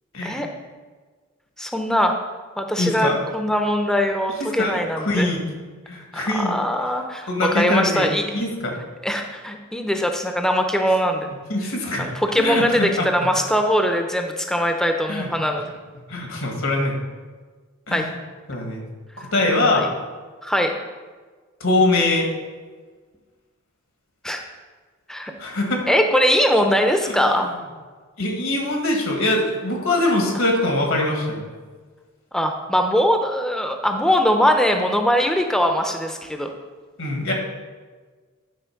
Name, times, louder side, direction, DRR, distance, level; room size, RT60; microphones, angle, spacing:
voice 1, 1.6-2.1 2.6-5.3 6.1-8.2 9.0-11.3 12.0-15.7 17.9-18.0 19.7-19.9 20.4-20.7 24.2-24.4 25.1-25.3 25.9-27.5 32.3-36.5, equal, 5° left, 4 dB, 0.6 m, -21 dB
voice 2, 2.8-3.2 4.4-5.5 5.9-6.6 7.3-8.8 11.5-12.1 12.4-13.1 15.1-15.3 16.1-17.0 17.9-18.2 18.5-18.8 19.2-19.9 21.6-22.3 25.4-25.9 27.1-27.6 28.2-31.5 37.0-37.3, left 2 dB, 70° left, 1 dB, 1.7 m, -23 dB
9.3 x 4.2 x 5.8 m, 1.4 s
head